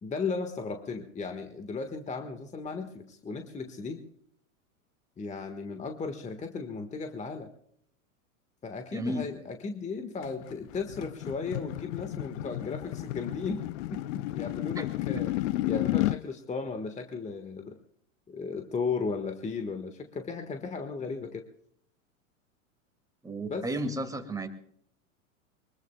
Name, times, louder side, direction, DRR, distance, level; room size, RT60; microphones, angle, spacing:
voice 1, 0.0-4.0 5.2-7.5 8.6-13.6 13.9-15.3 15.6-17.8 18.3-21.5 23.5-23.7, left 4 dB, 15° left, 6 dB, 1.5 m, -35 dB
voice 2, 8.9-9.3 14.8-14.9 23.2-24.5, right 1 dB, 10° right, 6 dB, 2.3 m, -33 dB
sound 1, 10.2-16.2, left 16 dB, 55° left, 0.6 m, -32 dB
23.0 x 21.5 x 2.2 m, 0.67 s
hypercardioid pair, 115°, 41 cm